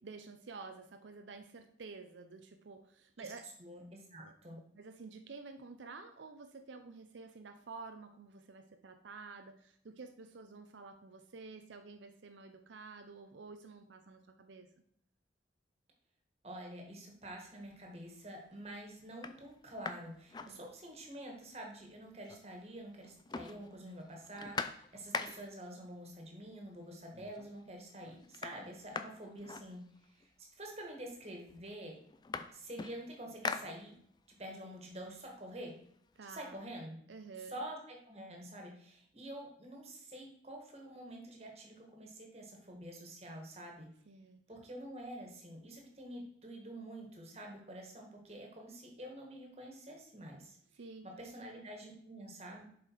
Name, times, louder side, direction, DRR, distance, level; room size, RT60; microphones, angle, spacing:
voice 1, 0.0-3.5 4.2-4.3 4.7-14.7 20.5-20.7 36.2-36.6 37.1-37.6 44.1-44.4 50.7-51.1, right 4 dB, 85° right, 7 dB, 0.6 m, -50 dB
voice 2, 3.6-4.6 16.4-32.0 32.5-33.9 34.4-35.7 36.2-37.0 37.5-43.9 44.5-50.6 51.0-52.6, right 1 dB, 35° right, 1 dB, 1.7 m, -48 dB
sound 1, 17.7-18.2 18.7-18.8 19.1-21.2 21.5-21.6 21.8-22.7 23.0-25.7 26.6-26.7 27.1-27.6 27.9-30.3 31.1-31.2 31.5-34.3 34.7-36.4, left 4 dB, 25° left, 0.4 m, -44 dB
7.2 x 5.1 x 4.6 m, 0.67 s
head